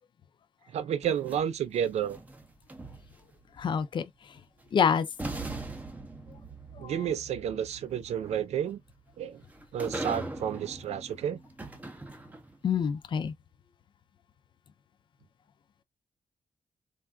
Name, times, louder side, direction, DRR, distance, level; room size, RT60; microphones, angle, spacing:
voice 1, 0.7-2.2 6.8-8.8 9.2-9.4 9.7-11.4, right 9 dB, 85° right, 0.4 m, -31 dB
sound 1, 1.0-3.4 4.6-4.7 5.2-12.7, right 2 dB, 15° right, 0.5 m, -41 dB
voice 2, 3.6-4.1 4.7-5.1 6.7-7.0 12.6-13.3, left 7 dB, 45° left, 0.4 m, -27 dB
3.2 x 2.3 x 2.3 m
wide cardioid pair, 160°, 11 cm